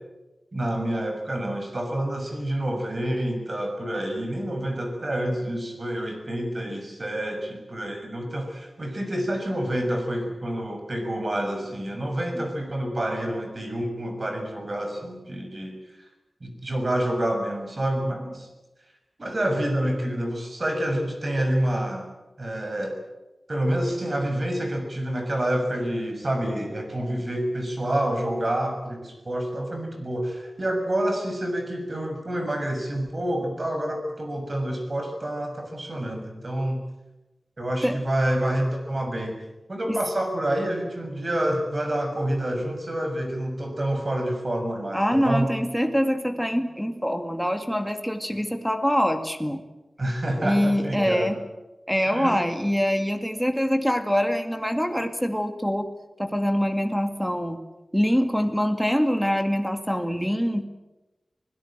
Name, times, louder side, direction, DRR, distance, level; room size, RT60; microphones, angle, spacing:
voice 1, 0.5-16.1 16.4-18.5 19.2-22.1 22.4-23.0 23.5-36.8 37.6-39.4 39.7-45.5 50.0-51.4 52.1-52.4, right 1 dB, 45° right, 4 dB, 6.5 m, -28 dB
voice 2, 44.9-49.6 50.4-51.4 51.9-55.9 56.2-57.6 57.9-60.7, equal, ahead, 6 dB, 2.1 m, -24 dB
24.5 x 17.0 x 9.0 m, 1.0 s
wide cardioid pair, 90°, 0 cm